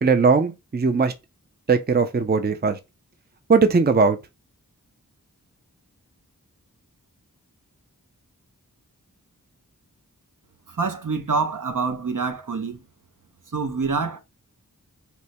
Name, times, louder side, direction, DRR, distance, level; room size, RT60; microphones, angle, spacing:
voice 1, 0.0-1.1 1.7-2.8 3.5-4.2, right 4 dB, 30° right, 0.5 m, -19 dB
voice 2, 10.7-12.8 13.5-14.2, right 4 dB, 60° right, 0.7 m, -26 dB
4.3 x 2.2 x 2.7 m
wide cardioid pair, 45°, 36 cm